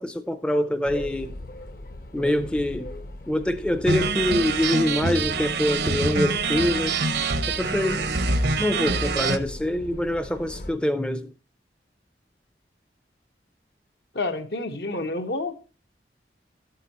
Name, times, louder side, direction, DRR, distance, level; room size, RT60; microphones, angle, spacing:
voice 1, 0.0-1.3 2.1-2.9 3.3-6.9 7.6-8.2 8.6-11.3, left 1 dB, 5° left, 0.5 m, -25 dB
sound 1, 0.8-10.7, left 1 dB, 55° left, 0.9 m, -40 dB
sound 2, 3.8-9.4, right 3 dB, 65° right, 0.8 m, -25 dB
voice 2, 14.1-15.8, left 2 dB, 70° left, 1.2 m, -29 dB
12.0 x 7.7 x 2.9 m
head